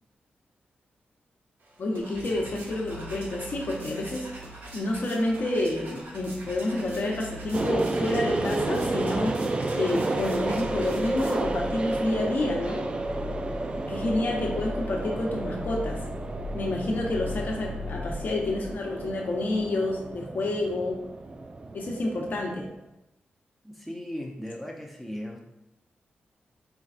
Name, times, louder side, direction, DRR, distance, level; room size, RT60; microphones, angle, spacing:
sound 1, 1.6-11.7, right 1 dB, 75° right, 1.0 m, -44 dB
voice 1, 1.8-4.3 4.7-9.4 9.7-12.9 13.7-16.0 16.5-21.0 21.7-22.7, left 2 dB, 60° left, -1 dB, 0.9 m, -29 dB
sound 2, 2.1-19.7 19.9-20.0, left 1 dB, 45° right, 1.0 m, -40 dB
sound 3, 7.5-22.7, right 2 dB, 30° right, 0.3 m, -32 dB
voice 2, 23.6-25.4, equal, ahead, -2 dB, 0.7 m, -37 dB
4.4 x 3.9 x 2.5 m, 0.89 s
cardioid pair, 90°, 4 cm